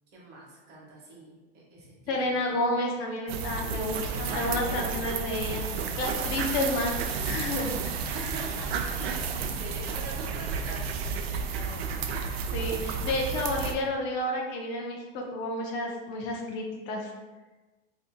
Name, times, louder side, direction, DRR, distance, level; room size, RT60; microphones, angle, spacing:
voice 1, 0.1-2.6 4.1-5.1 8.0-12.0, right 2 dB, 30° right, -4 dB, 1.0 m, -44 dB
voice 2, 2.1-8.0 12.5-17.1, left 1 dB, 35° left, 0 dB, 0.5 m, -31 dB
sound 1, 3.3-13.7, right 5 dB, 85° right, 0.5 m, -32 dB
2.6 x 2.4 x 3.7 m, 1.2 s
supercardioid pair, 155°, 30 cm